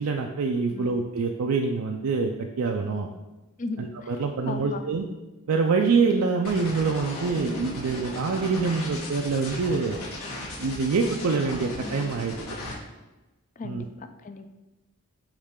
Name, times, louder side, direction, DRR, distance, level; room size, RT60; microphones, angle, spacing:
voice 1, 0.0-2.3 2.6-3.1 3.8-5.1 5.5-10.0 10.6-12.4 13.6-13.8, right 4 dB, 80° right, 3 dB, 0.4 m, -25 dB
voice 2, 3.6-4.1 4.4-4.8 13.6-14.5, left 3 dB, 35° left, 8 dB, 0.4 m, -36 dB
sound 1, 6.4-12.7, left 2 dB, 75° left, 1.6 m, -36 dB
8.1 x 3.2 x 3.7 m, 1.1 s
head